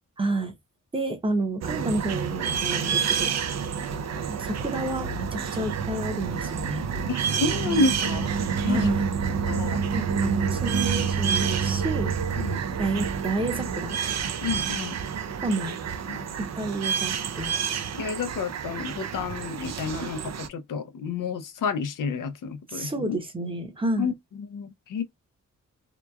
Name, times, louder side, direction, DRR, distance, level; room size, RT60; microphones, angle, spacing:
voice 1, 0.2-0.5 0.9-3.3 4.3-6.9 8.6-9.0 9.9-12.1 12.8-14.0 15.4-15.8 16.4-17.5 20.0-20.1 22.7-24.1, right 2 dB, 15° right, 0.7 m, -30 dB
sound 1, 1.6-20.5, right 6 dB, 60° right, 0.4 m, -28 dB
voice 2, 7.1-8.3 8.6-8.9 9.5-9.8 12.4-12.6 14.4-15.0 16.1-16.3 17.9-23.2 24.0-25.0, left 4 dB, 85° left, 0.5 m, -30 dB
2.9 x 2.2 x 2.2 m
wide cardioid pair, 110°, 31 cm